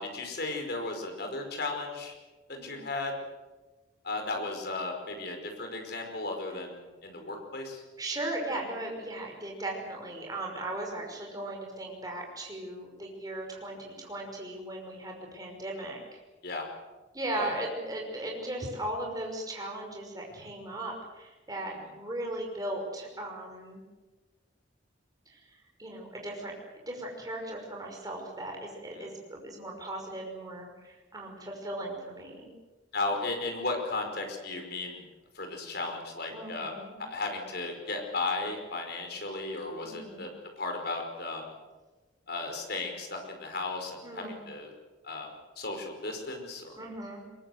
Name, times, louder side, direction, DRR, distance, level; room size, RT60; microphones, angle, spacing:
voice 1, 0.0-2.1 2.5-3.1 4.0-7.8 16.4-16.7 17.3-17.6 28.9-29.1 32.9-35.0 35.4-36.7 37.0-40.3 40.6-41.5 42.3-44.7 45.0-45.3 45.6-46.7, left 3 dB, 55° left, 3 dB, 5.2 m, -35 dB
voice 2, 2.5-2.8 8.0-16.2 17.1-23.8 25.3-25.4 25.8-32.5 36.3-37.0 39.8-40.3 44.0-44.4 46.8-47.2, right 1 dB, 20° right, 0 dB, 5.7 m, -37 dB
23.0 x 22.0 x 8.0 m, 1.2 s
head